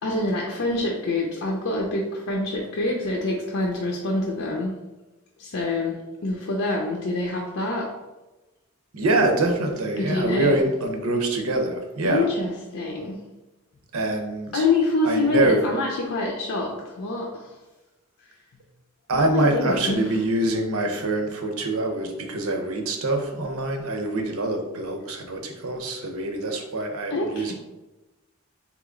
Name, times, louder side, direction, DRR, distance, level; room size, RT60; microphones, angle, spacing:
voice 1, 0.0-4.7 5.4-5.9 6.2-7.9 10.0-10.6 12.0-13.2 14.5-17.5 19.1-20.1 27.1-27.5, left 2 dB, 70° left, -1 dB, 0.6 m, -26 dB
voice 2, 8.9-12.3 13.9-14.7 15.0-15.7 19.1-27.5, right 2 dB, 85° right, 3 dB, 0.8 m, -25 dB
3.7 x 3.0 x 3.7 m, 1.1 s
head